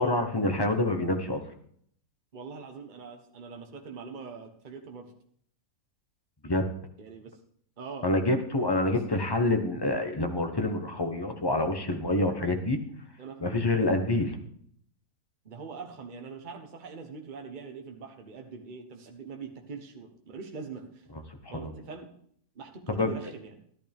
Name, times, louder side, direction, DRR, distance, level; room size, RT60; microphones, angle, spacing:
voice 1, 0.0-1.4 6.4-6.7 8.0-12.8 13.4-14.4 21.5-21.7 22.9-23.1, left 2 dB, 20° left, 5 dB, 0.9 m, -27 dB
voice 2, 2.3-5.1 7.0-7.4 7.8-8.1 8.9-9.0 13.2-13.4 15.4-21.0 21.5-22.1 22.5-23.6, right 5 dB, 30° right, 3 dB, 1.2 m, -42 dB
14.0 x 11.5 x 3.5 m, 0.63 s
omnidirectional pair, 1.7 m